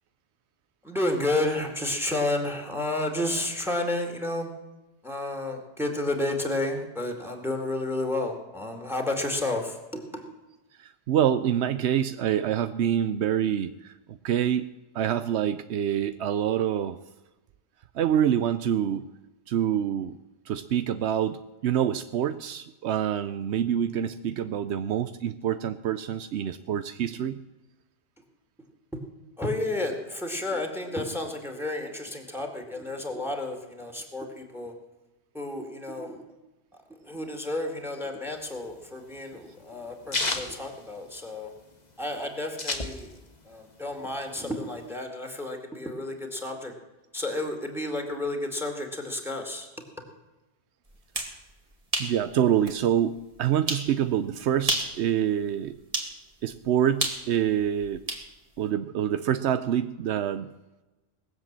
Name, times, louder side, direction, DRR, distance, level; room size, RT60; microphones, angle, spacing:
voice 1, 0.8-4.5 5.0-10.0 29.4-34.7 35.3-36.2 37.0-41.5 42.0-43.1 43.5-46.7 47.1-49.7, left 2 dB, ahead, 4 dB, 2.1 m, -31 dB
voice 2, 11.1-13.9 14.2-14.7 14.9-17.0 18.0-19.1 19.5-20.2 20.5-27.4 52.0-55.7 56.4-58.0 58.6-60.5, right 10 dB, 85° right, 11 dB, 0.9 m, -26 dB
sound 1, 38.4-41.5 41.9-42.0 42.1-43.4 43.8-44.9, left 2 dB, 40° left, 1.7 m, -32 dB
sound 2, 50.9-51.4 51.9-52.2 52.7-52.8 53.7-53.9 54.6-55.0 55.9-56.1 57.0-58.3, right 1 dB, 35° right, 2.3 m, -29 dB
20.0 x 7.6 x 7.4 m, 1.1 s
omnidirectional pair, 1.1 m